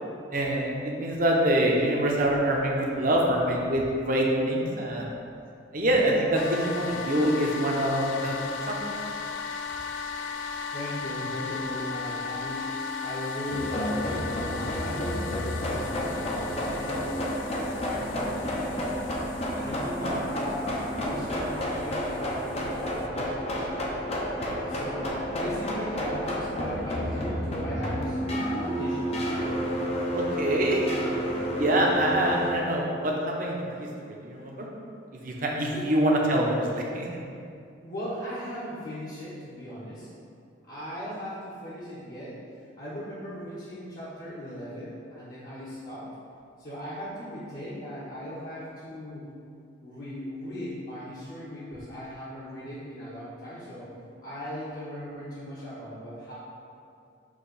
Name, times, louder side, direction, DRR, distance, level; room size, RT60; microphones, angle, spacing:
voice 1, 0.3-5.1 5.7-8.3 8.7-8.9 20.0-20.2 30.1-31.0 31.2-34.7 35.1-37.1, right 1 dB, 45° right, -2 dB, 0.9 m, -25 dB
sound 1, 6.3-23.1, left 5 dB, 75° left, 0.4 m, -37 dB
voice 2, 10.7-12.7 13.0-17.2 17.6-18.9 19.5-23.6 24.6-29.2 35.7-35.9 37.8-40.1 40.7-42.4 42.8-46.1 46.6-49.2 49.8-53.9 54.2-56.3, equal, 50° left, -11 dB, 1.2 m, -38 dB
sound 2, 13.5-32.5, equal, 30° left, 0.7 m, -30 dB
6.6 x 3.1 x 5.6 m, 2.4 s
head